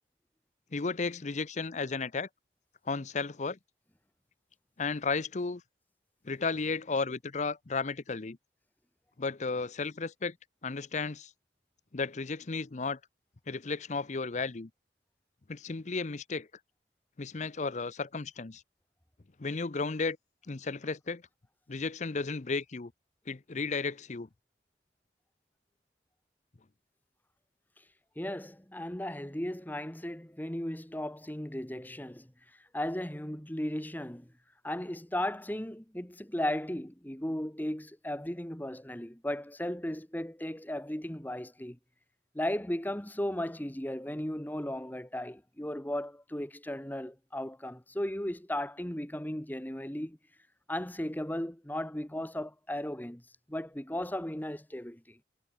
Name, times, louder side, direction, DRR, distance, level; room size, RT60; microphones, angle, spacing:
voice 1, 0.7-2.3 2.9-3.6 4.8-5.6 6.2-8.4 9.2-10.4 10.6-11.3 11.9-13.0 13.5-14.7 15.5-16.5 17.2-18.6 19.4-20.2 20.5-21.2 21.7-22.9 23.3-24.3, left 4 dB, 40° left, 0.7 m, -34 dB
voice 2, 28.2-32.3 32.7-34.3 34.6-41.8 42.3-50.2 50.7-53.2 53.5-55.2, left 1 dB, 10° left, 1.4 m, -36 dB
head